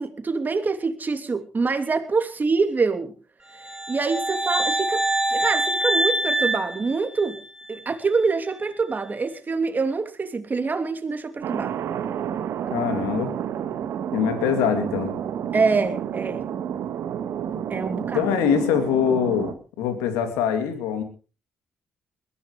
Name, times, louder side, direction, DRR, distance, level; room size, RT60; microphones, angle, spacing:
voice 1, 0.0-3.1 3.9-7.4 7.7-11.8 15.5-16.4 17.7-18.2, right 4 dB, 35° right, 3.0 m, -25 dB
sound 1, 3.6-7.6, right 1 dB, 10° right, 4.4 m, -25 dB
Thunder, 11.4-19.5, right 9 dB, 70° right, 1.7 m, -30 dB
voice 2, 12.7-13.3 14.1-15.1 18.1-21.0, left 8 dB, 90° left, 2.7 m, -23 dB
21.5 x 15.0 x 3.2 m
supercardioid pair, 55°, 5 cm